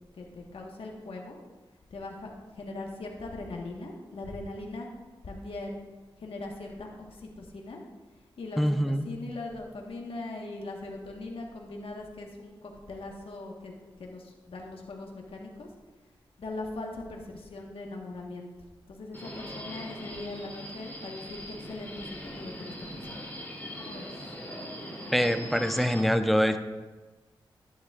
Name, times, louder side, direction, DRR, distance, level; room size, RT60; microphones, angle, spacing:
voice 1, 0.1-1.4 1.9-2.3 2.5-4.9 5.2-5.8 6.2-7.8 8.4-13.7 14.0-15.7 16.4-18.5 18.9-22.0 22.3-23.3 23.8-24.1, left 2 dB, 75° left, 0 dB, 1.4 m, -40 dB
voice 2, 8.6-9.1 25.1-26.6, equal, ahead, 7 dB, 0.7 m, -24 dB
Subway metro underground, 19.1-26.0, equal, 20° left, 3.1 m, -41 dB
11.5 x 10.0 x 2.5 m, 1.2 s
cardioid pair, 55°, 10 cm